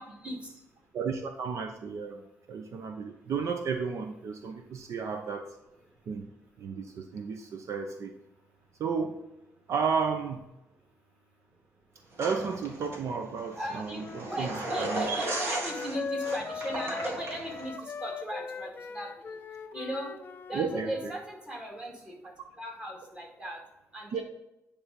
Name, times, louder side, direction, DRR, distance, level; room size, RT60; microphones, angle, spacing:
voice 1, 0.0-0.9 2.6-3.3 4.4-4.9 5.9-6.1 6.6-6.8 11.5-11.6 11.9-12.0 13.5-20.2 20.5-23.6 23.9-24.2, right 1 dB, 20° right, -1 dB, 1.9 m, -38 dB
voice 2, 0.9-2.2 2.5-5.4 6.1-6.3 6.6-8.1 8.8-9.2 9.7-10.4 12.2-15.2 20.5-20.9 24.1-24.2, right 5 dB, 65° right, 5 dB, 0.7 m, -33 dB
sound 1, 12.2-17.7, right 1 dB, 50° right, 2.0 m, -37 dB
Wind instrument woodwind instrument, 13.8-21.1, left 5 dB, 35° left, 0.4 m, -39 dB
9.7 x 3.4 x 5.1 m, 0.91 s
cardioid pair, 135°, 5 cm